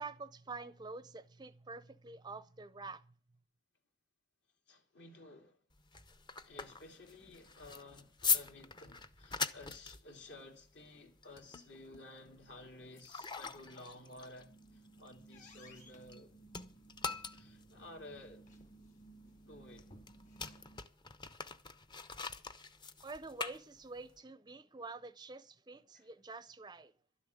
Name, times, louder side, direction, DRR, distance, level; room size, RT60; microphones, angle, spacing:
voice 1, 0.0-3.1 23.0-26.9, right 3 dB, 20° right, 0.5 m, -47 dB
voice 2, 4.7-5.6 6.4-16.3 17.3-18.4 19.5-19.9 25.9-26.1, left 2 dB, 65° left, 2.7 m, -54 dB
sound 1, 5.7-16.2 16.5-24.2, left 5 dB, 25° left, 0.7 m, -42 dB
sound 2, 14.3-20.8, right 1 dB, 40° left, 2.2 m, -58 dB
12.5 x 7.1 x 9.5 m
head